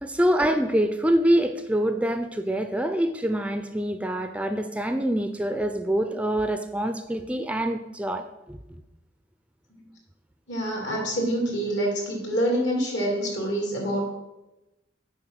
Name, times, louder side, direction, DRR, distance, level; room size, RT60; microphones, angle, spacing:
voice 1, 0.0-8.8, right 1 dB, 5° right, 7 dB, 0.4 m, -25 dB
voice 2, 10.5-14.1, right 1 dB, 75° left, 0 dB, 2.5 m, -26 dB
7.5 x 5.2 x 6.2 m, 0.99 s
head